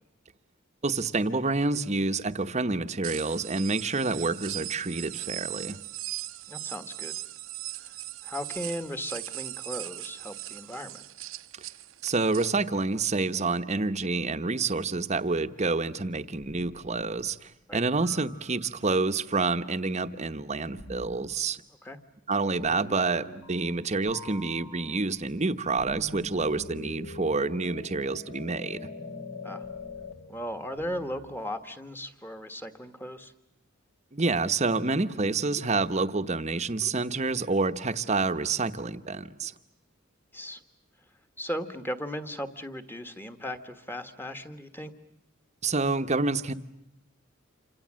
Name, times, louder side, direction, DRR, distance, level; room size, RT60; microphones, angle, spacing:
voice 1, 0.8-5.8 12.0-21.6 22.3-28.9 34.1-39.5 45.6-46.5, right 3 dB, 35° right, 10 dB, 1.0 m, -28 dB
sound 1, 3.0-12.5, right 16 dB, 85° right, 1.0 m, -39 dB
voice 2, 6.5-7.1 7.8-7.9 8.2-11.0 17.7-17.8 21.8-22.0 29.4-29.7 30.3-33.3 40.3-40.6 41.4-44.9, equal, 10° left, 7 dB, 1.5 m, -37 dB
sound 2, 16.4-17.2 18.0-19.1 20.8-21.3 22.6-23.8 24.1-31.5, left 2 dB, 65° left, 3.4 m, -44 dB
28.0 x 26.0 x 7.6 m, 0.86 s
head